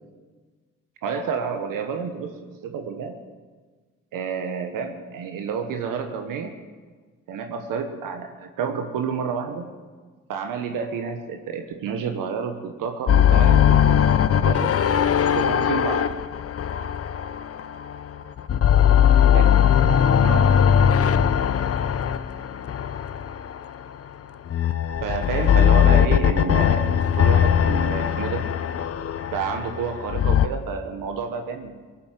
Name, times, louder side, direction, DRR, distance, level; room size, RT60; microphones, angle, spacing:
voice 1, 1.0-3.2 4.1-6.5 7.3-9.7 10.3-14.0 14.4-14.7 15.3-16.1 18.7-18.8 19.3-19.4 20.2-20.6 25.0-28.4 29.3-31.7, right 6 dB, 75° right, 5 dB, 1.3 m, -29 dB
sound 1, 13.1-18.0 18.4-23.7 24.5-30.5, left 9 dB, 45° left, 0.8 m, -19 dB
18.0 x 8.6 x 7.6 m, 1.4 s
supercardioid pair, 60°, 33 cm